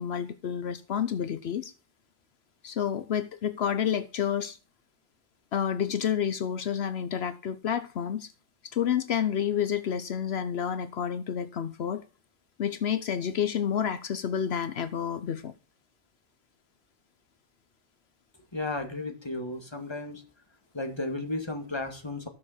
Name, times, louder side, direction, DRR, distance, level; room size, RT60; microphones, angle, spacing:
voice 1, 0.0-1.7 2.6-4.6 5.5-8.3 8.7-12.0 12.6-15.5, left 8 dB, 75° left, 1.0 m, -29 dB
voice 2, 18.5-20.2 20.7-22.3, left 2 dB, 25° left, 2.0 m, -34 dB
14.5 x 6.3 x 7.3 m
omnidirectional pair, 1.1 m